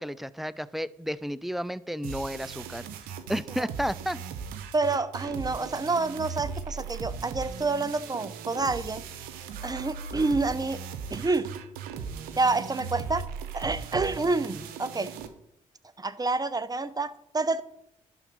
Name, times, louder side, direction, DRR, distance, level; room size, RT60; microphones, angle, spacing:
voice 1, 0.0-2.8 3.3-4.2, equal, ahead, 18 dB, 0.5 m, -32 dB
sound 1, 2.0-15.3, right 6 dB, 85° right, 0.8 m, -38 dB
voice 2, 4.7-9.0 9.6-10.8 11.1-11.5 12.4-13.2 13.5-15.1 16.0-17.6, right 3 dB, 25° right, 14 dB, 0.8 m, -28 dB
11.5 x 4.0 x 6.1 m, 0.79 s
hypercardioid pair, 45°, 15 cm